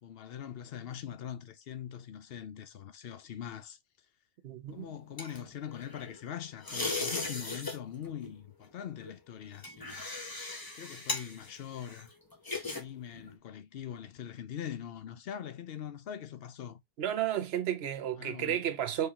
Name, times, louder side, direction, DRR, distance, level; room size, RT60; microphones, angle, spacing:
voice 1, 0.0-3.8 4.7-10.1 10.7-12.1 12.7-16.8 18.2-18.7, left 9 dB, 60° left, 0.7 m, -42 dB
voice 2, 4.4-4.9 17.0-19.1, right 10 dB, 55° right, 0.9 m, -32 dB
sound 1, 4.7-6.2 6.6-7.8 8.0-8.3 9.0-12.8 13.1-13.4, left 3 dB, 20° left, 0.8 m, -38 dB
4.3 x 2.9 x 3.6 m
omnidirectional pair, 1.4 m